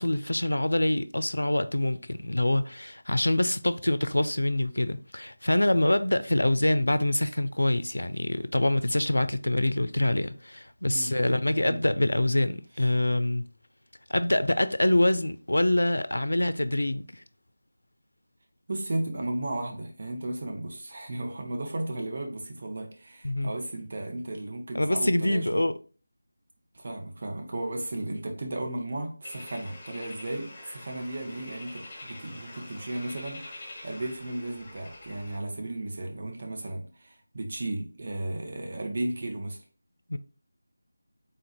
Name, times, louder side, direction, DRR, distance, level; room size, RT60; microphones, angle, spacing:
voice 1, 0.0-13.4 14.1-17.2 23.2-23.5 24.7-25.7 40.1-40.2, left 1 dB, 85° left, 0.4 m, -25 dB
voice 2, 10.9-11.4 11.7-11.8 12.8-12.9 18.7-25.6 26.7-39.6, right 1 dB, 45° right, 1.1 m, -35 dB
sound 1, 29.2-35.4, left 2 dB, 20° left, 1.4 m, -45 dB
3.8 x 2.5 x 4.2 m
figure-of-eight pair, 165°, 0 cm